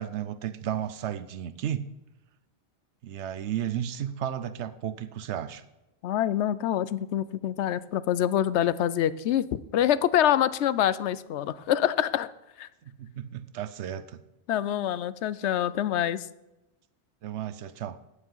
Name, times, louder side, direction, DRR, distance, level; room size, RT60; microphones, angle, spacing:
voice 1, 0.0-1.8 3.0-5.6 12.8-14.2 17.2-18.0, right 10 dB, 90° right, 14 dB, 1.0 m, -33 dB
voice 2, 6.0-12.3 12.6-12.7 14.5-16.3, left 11 dB, 80° left, 17 dB, 0.9 m, -26 dB
9.7 x 8.3 x 5.6 m, 0.95 s
omnidirectional pair, 1.1 m